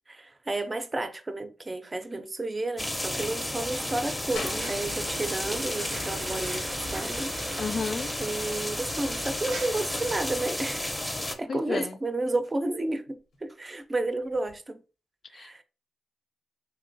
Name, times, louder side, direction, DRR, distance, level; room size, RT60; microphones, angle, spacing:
voice 1, 0.1-6.7 6.9-7.6 8.2-10.9 11.4-14.8 15.3-15.6, right 2 dB, 30° right, 0.5 m, -32 dB
sound 1, 2.8-11.4, left 1 dB, 15° left, 0.6 m, -32 dB
sound 2, 4.4-14.6, left 3 dB, 80° left, 0.7 m, -49 dB
sound 3, 4.6-10.5, right 3 dB, 85° right, 0.6 m, -42 dB
voice 2, 7.6-8.1 11.1-12.0 15.3-15.6, left 5 dB, 60° left, 0.4 m, -33 dB
3.0 x 2.8 x 2.6 m
supercardioid pair, 45°, 0 cm